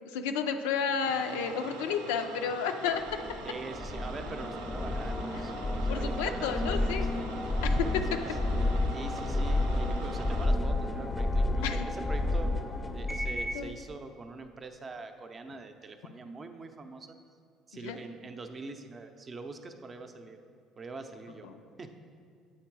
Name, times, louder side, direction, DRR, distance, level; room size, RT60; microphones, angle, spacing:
voice 1, 0.0-3.0 5.9-7.1 7.6-8.2 11.6-11.9 13.5-13.7 17.8-18.0 21.4-21.6, left 6 dB, 85° left, 7 dB, 0.4 m, -31 dB
sound 1, 1.0-10.5, right 4 dB, 85° right, 0.5 m, -45 dB
sound 2, 3.1-13.7, left 2 dB, 20° left, 0.5 m, -30 dB
voice 2, 3.4-7.3 7.9-8.3 8.9-12.5 12.9-17.2 17.7-20.4 20.8-21.5 21.8-21.9, right 3 dB, 35° right, 7 dB, 0.6 m, -44 dB
7.8 x 3.8 x 4.6 m, 2.2 s
hypercardioid pair, 70°, 0 cm